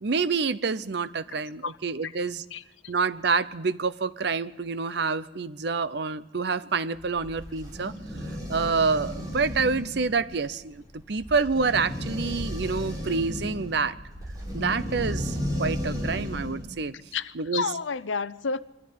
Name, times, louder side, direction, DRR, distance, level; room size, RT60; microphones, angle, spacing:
voice 1, 0.0-2.4 2.9-7.9 8.5-14.0 14.5-16.9 17.4-17.6, right 4 dB, 60° right, 0.7 m, -27 dB
voice 2, 2.5-2.9 17.1-18.6, left 5 dB, 80° left, 0.7 m, -31 dB
sound 1, 6.9-16.7, equal, 20° right, 5.3 m, -34 dB
22.0 x 14.0 x 9.4 m
head